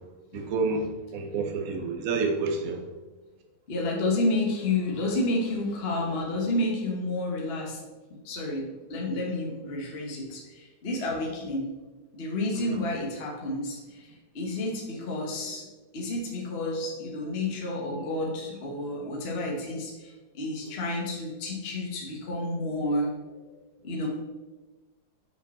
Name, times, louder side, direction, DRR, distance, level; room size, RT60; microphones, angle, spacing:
voice 1, 0.3-0.9 1.1-2.8 12.7-12.8, right 4 dB, 55° right, 2 dB, 1.3 m, -28 dB
voice 2, 3.7-7.8 8.2-11.7 12.1-15.7 15.9-23.1 23.4-23.5 23.8-24.1, left 2 dB, 35° left, -1 dB, 1.2 m, -30 dB
6.3 x 4.9 x 4.1 m, 1.2 s
omnidirectional pair, 2.0 m